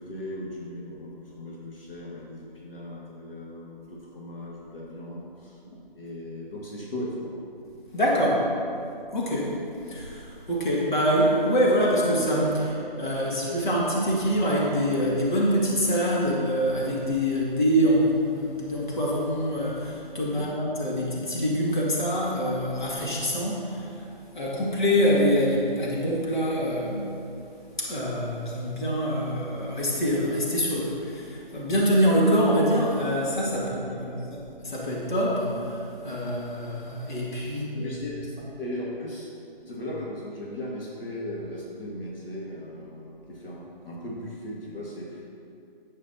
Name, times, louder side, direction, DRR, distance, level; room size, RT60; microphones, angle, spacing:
voice 1, 0.0-7.1 8.5-8.6 20.3-20.5 33.5-34.3 37.7-39.3 39.7-45.2, left 1 dB, 70° left, -5 dB, 2.0 m, -38 dB
voice 2, 7.9-8.4 9.1-9.5 9.9-24.1 24.3-27.1 27.8-37.9, equal, 55° left, -5 dB, 2.1 m, -25 dB
11.0 x 8.0 x 2.8 m, 2.6 s
hypercardioid pair, 175°, 29 cm